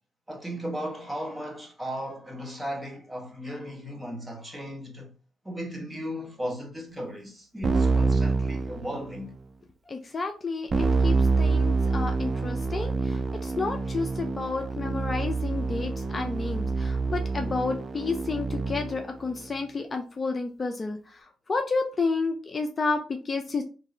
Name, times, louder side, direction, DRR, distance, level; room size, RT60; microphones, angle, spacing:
voice 1, 0.3-5.1 5.4-9.4, equal, 10° right, 1.1 m, -36 dB
Keyboard (musical), 7.6-9.3 10.7-19.1, right 3 dB, 35° right, 0.4 m, -27 dB
voice 2, 9.9-21.2 21.5-23.6, left 3 dB, 30° left, 0.5 m, -31 dB
3.0 x 2.7 x 3.8 m
cardioid pair, 90°, 0 cm